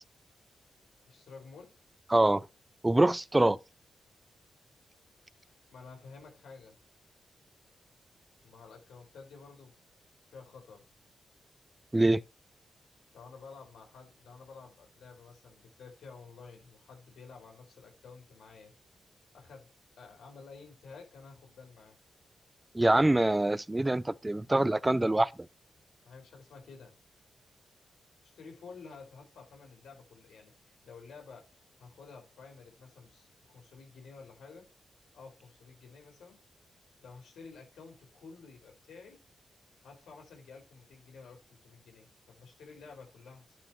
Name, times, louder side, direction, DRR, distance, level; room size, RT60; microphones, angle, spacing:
voice 1, 1.1-1.8 5.4-6.8 8.4-9.7 10.3-10.9 13.1-18.7 19.3-19.7 20.0-22.0 26.0-27.0 28.2-31.5 31.8-34.7 35.1-36.4 37.0-39.2 39.8-43.6, left 4 dB, 80° left, 4.8 m, -51 dB
voice 2, 2.1-2.5 2.8-3.6 11.9-12.2 22.7-25.3, right 1 dB, 20° right, 0.5 m, -24 dB
12.0 x 6.2 x 3.1 m
supercardioid pair, 50°, 0 cm